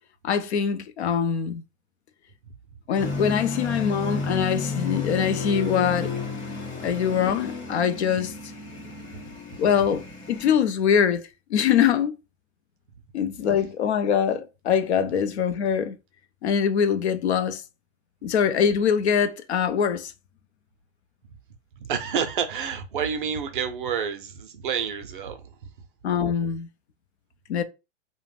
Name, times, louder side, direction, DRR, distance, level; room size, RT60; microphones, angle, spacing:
voice 1, 0.2-1.6 2.9-6.1 6.8-8.3 9.6-11.2 11.5-12.2 13.1-16.0 16.4-17.6 18.2-20.1 26.0-26.7 27.5-27.6, left 7 dB, 60° left, 0.5 m, -23 dB
sound 1, 3.0-10.6, left 4 dB, 35° left, 0.9 m, -32 dB
voice 2, 21.8-25.4, right 7 dB, 45° right, 0.5 m, -29 dB
2.4 x 2.1 x 3.2 m
hypercardioid pair, 160°, 38 cm